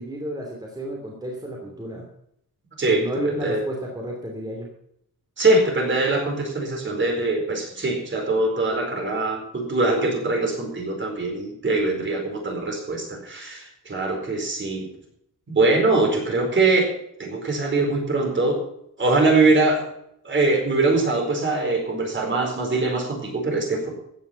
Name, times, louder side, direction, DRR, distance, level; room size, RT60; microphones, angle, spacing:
voice 1, 0.0-2.1 2.9-4.7, right 1 dB, 10° right, -1 dB, 2.8 m, -31 dB
voice 2, 2.8-3.6 5.4-14.9 15.5-16.9 17.2-18.6 19.0-19.9 20.2-23.9, right 2 dB, 35° right, 2 dB, 4.5 m, -22 dB
15.5 x 9.8 x 5.8 m, 0.74 s
wide cardioid pair, 175°, 33 cm